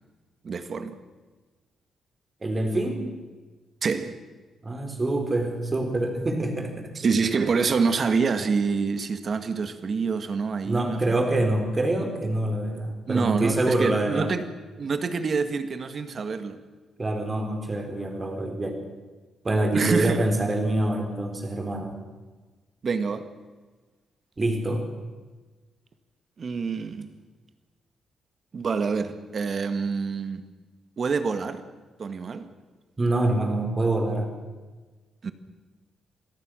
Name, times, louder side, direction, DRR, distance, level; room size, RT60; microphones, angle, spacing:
voice 1, 0.4-1.0 3.8-4.2 7.0-11.1 13.1-14.4 14.8-16.6 19.7-20.3 22.8-23.3 26.4-27.1 28.5-30.5 31.0-31.6 32.0-32.5 35.2-35.3, right 5 dB, 40° right, 1.8 m, -26 dB
voice 2, 2.4-3.1 4.6-6.9 10.7-14.3 17.0-18.8 19.4-22.0 24.4-24.8 33.0-34.3, right 2 dB, 25° right, 4.1 m, -25 dB
27.0 x 18.0 x 6.4 m
cardioid pair, 125°, 0 cm